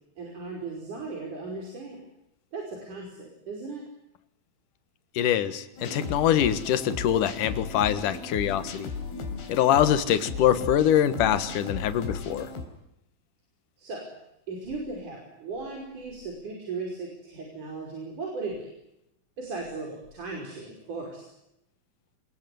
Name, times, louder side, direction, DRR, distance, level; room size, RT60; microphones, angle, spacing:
voice 1, 0.2-2.0 2.5-3.8 13.8-14.1 14.5-18.7 19.4-21.3, right 3 dB, 50° right, 0 dB, 6.7 m, -37 dB
voice 2, 5.2-8.9 9.5-12.5, left 10 dB, 60° left, 12 dB, 2.8 m, -24 dB
sound 1, 5.8-12.7, left 4 dB, 75° left, 5.8 m, -36 dB
26.5 x 22.0 x 9.4 m, 0.83 s
omnidirectional pair, 4.7 m